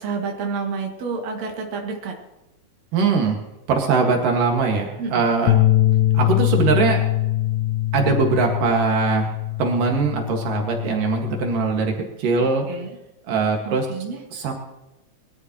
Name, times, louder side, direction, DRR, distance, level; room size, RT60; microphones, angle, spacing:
voice 1, 0.0-2.2 5.0-5.3 12.7-12.9 13.6-14.2, right 4 dB, 55° right, 1 dB, 3.2 m, -29 dB
voice 2, 2.9-3.4 3.7-5.6 6.1-7.0 7.9-9.3 9.6-12.7 13.3-13.9 14.3-14.5, right 4 dB, 80° right, 2 dB, 3.5 m, -21 dB
sound 1, 5.5-11.7, left 15 dB, 90° left, 2.4 m, -22 dB
22.5 x 13.0 x 3.0 m, 0.98 s
omnidirectional pair, 3.8 m